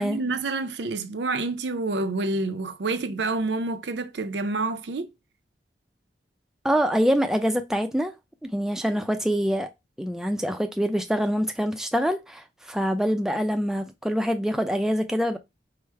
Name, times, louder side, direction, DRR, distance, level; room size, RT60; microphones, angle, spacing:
voice 1, 0.0-5.1, right 3 dB, 75° right, 0.6 m, -28 dB
voice 2, 6.6-8.1 8.4-9.7 10.0-15.4, equal, 5° right, 0.3 m, -25 dB
4.8 x 2.1 x 4.5 m
head